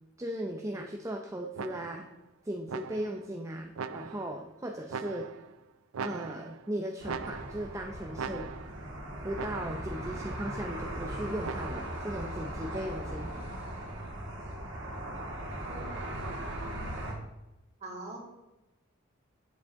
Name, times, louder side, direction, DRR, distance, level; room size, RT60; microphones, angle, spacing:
voice 1, 0.2-2.1 2.4-5.3 6.0-8.5 9.2-13.3, right 1 dB, 15° right, 2 dB, 0.5 m, -37 dB
sound 1, 1.6-2.1 2.7-3.3 3.8-4.4 4.9-5.6 5.9-6.7 7.0-7.8 8.2-8.9 9.4-9.9 11.4-12.0, right 5 dB, 80° right, 0.5 m, -40 dB
sound 2, 7.0-17.1, right 1 dB, 60° right, 2.2 m, -38 dB
voice 2, 17.8-18.2, right 2 dB, 30° right, -2 dB, 2.4 m, -41 dB
7.9 x 7.5 x 3.6 m, 0.97 s
head